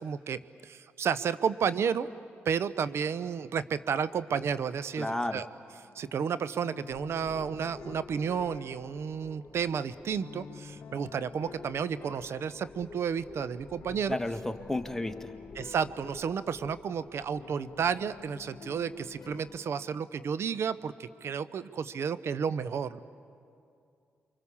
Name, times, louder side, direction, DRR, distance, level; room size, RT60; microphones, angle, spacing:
voice 1, 0.0-2.1 2.4-5.5 5.9-14.2 15.6-23.0, right 7 dB, 65° right, 14 dB, 0.8 m, -32 dB
voice 2, 5.0-5.4 14.1-15.3, left 1 dB, 10° left, 7 dB, 1.7 m, -32 dB
sound 1, 5.7-20.1, left 6 dB, 70° left, 0.8 m, -51 dB
sound 2, 6.9-19.6, left 4 dB, 35° left, 1.5 m, -51 dB
29.0 x 24.5 x 7.2 m, 2.5 s
supercardioid pair, 50°, 5 cm